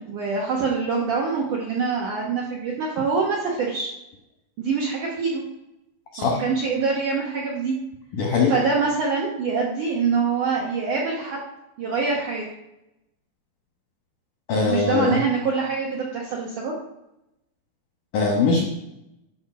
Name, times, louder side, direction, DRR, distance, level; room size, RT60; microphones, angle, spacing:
voice 1, 0.0-3.9 4.6-5.4 6.2-7.7 8.5-11.4 11.8-12.4 14.6-16.7, right 5 dB, 75° right, -2 dB, 1.8 m, -25 dB
voice 2, 8.1-8.5 14.5-15.2 18.1-18.6, left 4 dB, 80° left, 0 dB, 1.8 m, -21 dB
12.5 x 4.6 x 6.0 m, 0.88 s
omnidirectional pair, 5.7 m